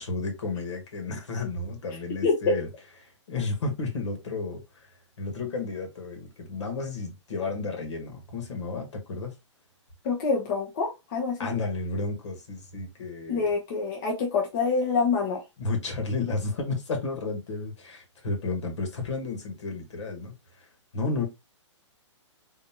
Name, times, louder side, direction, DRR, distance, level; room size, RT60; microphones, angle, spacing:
voice 1, 0.0-2.7 3.0-4.8 5.2-9.3 11.4-13.5 15.6-20.7 20.9-21.2, left 3 dB, 70° left, 1.9 m, -32 dB
voice 2, 2.2-2.6 10.0-11.5 13.3-15.4, left 4 dB, 45° left, 1.1 m, -26 dB
4.0 x 3.1 x 3.0 m
hypercardioid pair, 135°, 16 cm